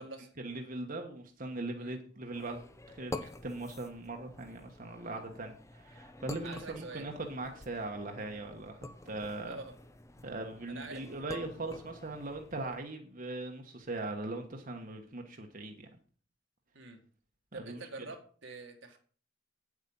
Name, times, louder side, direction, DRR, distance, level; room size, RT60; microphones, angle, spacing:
voice 1, 0.4-2.6 2.9-8.8 9.0-9.6 10.2-15.9 17.5-17.8, right 2 dB, 45° right, 3 dB, 1.3 m, -40 dB
sound 1, 2.3-12.8, left 2 dB, 15° left, 0.7 m, -48 dB
voice 2, 6.4-7.1 9.5-9.7 10.7-11.1 16.7-17.0 17.5-19.0, right 3 dB, 75° right, 4 dB, 1.9 m, -46 dB
9.2 x 8.4 x 5.5 m, 0.43 s
head